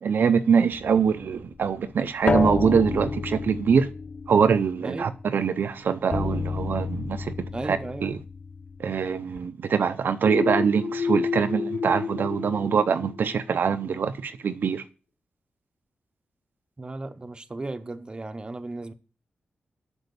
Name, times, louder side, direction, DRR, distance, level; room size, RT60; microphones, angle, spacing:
voice 1, 0.0-3.9 4.3-7.3 7.6-8.2 8.8-14.8, right 6 dB, 70° right, 0.6 m, -23 dB
sound 1, 0.7-5.5 6.1-9.4, left 4 dB, 35° left, 0.5 m, -31 dB
voice 2, 7.5-8.2 16.8-18.9, right 2 dB, 25° right, 0.8 m, -35 dB
sound 2, 10.2-13.9, left 5 dB, 50° left, 2.1 m, -30 dB
8.0 x 5.4 x 6.9 m
wide cardioid pair, 105°, 4 cm